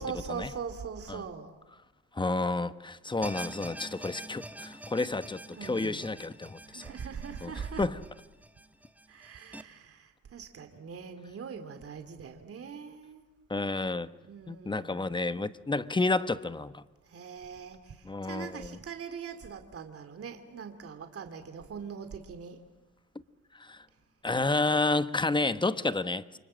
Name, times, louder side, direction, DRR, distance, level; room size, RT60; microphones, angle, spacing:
voice 1, 0.0-1.5 4.1-4.3 5.5-6.0 6.7-7.8 9.1-13.2 14.2-15.1 17.1-22.6, right 6 dB, 50° right, 7 dB, 2.5 m, -42 dB
voice 2, 2.1-6.9 7.4-8.0 13.5-14.1 14.5-16.8 18.0-18.8 23.6-23.8 24.2-26.4, left 3 dB, 15° left, 13 dB, 1.1 m, -30 dB
sound 1, 3.2-9.6, right 1 dB, 5° right, 1.2 m, -45 dB
29.5 x 24.5 x 7.5 m, 1.1 s
cardioid pair, 90°, 30 cm